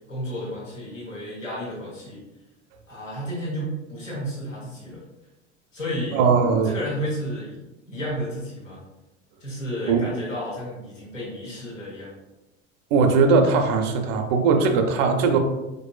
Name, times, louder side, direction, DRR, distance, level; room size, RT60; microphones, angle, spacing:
voice 1, 0.1-2.2 2.9-5.0 5.7-6.3 6.6-8.8 9.4-12.1, equal, 85° left, -6 dB, 1.1 m, -32 dB
voice 2, 6.1-6.7 9.9-10.1 12.9-15.4, right 4 dB, 50° right, 5 dB, 0.5 m, -19 dB
4.0 x 2.6 x 2.3 m, 1.0 s
figure-of-eight pair, 70°, 37 cm